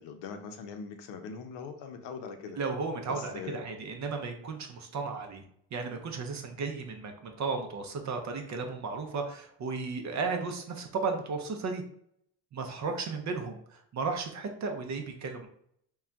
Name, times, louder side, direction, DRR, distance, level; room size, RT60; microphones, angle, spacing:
voice 1, 0.0-2.6 3.1-3.7, left 5 dB, 65° left, 6 dB, 0.6 m, -41 dB
voice 2, 2.6-5.4 5.7-11.8 12.5-15.5, right 4 dB, 40° right, 4 dB, 0.5 m, -34 dB
2.3 x 2.1 x 3.7 m, 0.67 s
supercardioid pair, 90°, 46 cm